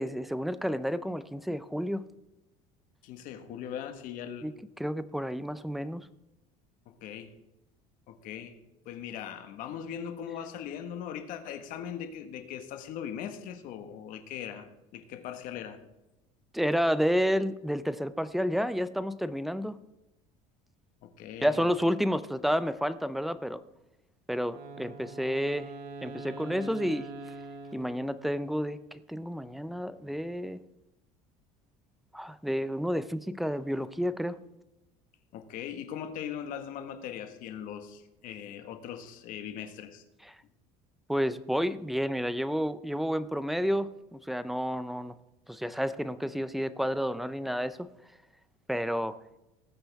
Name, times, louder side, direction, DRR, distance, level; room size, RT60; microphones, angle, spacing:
voice 1, 0.0-2.0 4.4-4.5 4.8-6.1 16.5-19.8 21.4-23.6 24.3-25.7 26.0-27.1 27.7-28.8 29.1-30.6 32.1-34.4 40.3-40.4 41.1-45.1 45.5-47.9 48.7-49.2, equal, ahead, 0.4 m, -30 dB
voice 2, 3.0-4.5 6.9-7.3 8.1-8.6 8.8-15.8 21.0-21.7 35.3-40.0, left 9 dB, 60° left, 1.5 m, -40 dB
Wind instrument woodwind instrument, 24.5-28.6, right 3 dB, 80° right, 2.2 m, -44 dB
19.0 x 8.0 x 3.5 m
cardioid pair, 145°, 16 cm